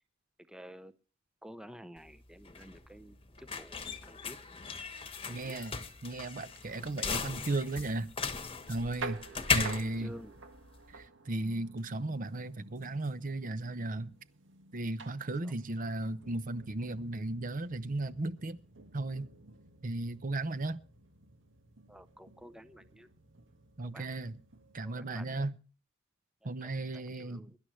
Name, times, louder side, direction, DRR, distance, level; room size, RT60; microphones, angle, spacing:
voice 1, 0.5-0.9 1.4-4.4 5.2-5.6 9.3-10.3 15.4-15.5 21.9-23.1 23.8-24.1 24.8-25.4 26.4-27.6, equal, 5° right, 0.7 m, -51 dB
sound 1, 2.0-11.0, left 5 dB, 25° left, 1.2 m, -37 dB
voice 2, 5.3-8.1 8.7-9.2 9.5-10.1 10.9-14.1 14.7-18.6 18.9-19.3 19.8-20.8 23.8-24.4 24.7-25.6 26.4-27.5, right 2 dB, 40° right, 0.8 m, -35 dB
sound 2, 8.6-24.8, right 3 dB, 65° right, 1.7 m, -51 dB
23.0 x 11.5 x 3.2 m
head